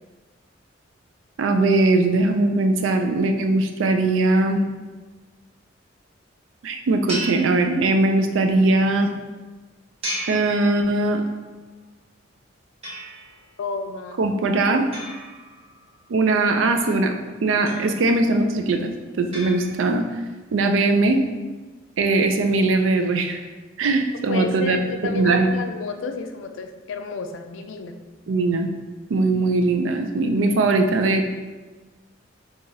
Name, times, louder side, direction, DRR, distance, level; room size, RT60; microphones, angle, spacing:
voice 1, 1.4-4.6 6.6-9.1 10.3-11.2 14.2-14.8 16.1-17.1 17.4-18.9 19.2-20.0 20.5-21.2 22.0-23.4 23.8-24.8 25.1-25.5 28.3-28.7 29.1-31.3, right 2 dB, 80° right, 6 dB, 0.4 m, -20 dB
sound 1, 7.1-8.3 10.0-11.3 12.8-13.5 14.9-16.1 17.7-18.4 19.3-20.2, right 1 dB, 30° right, 0.8 m, -35 dB
voice 2, 13.6-14.2 24.3-28.0, left 3 dB, 75° left, 6 dB, 0.4 m, -31 dB
4.7 x 2.4 x 2.7 m, 1.3 s
head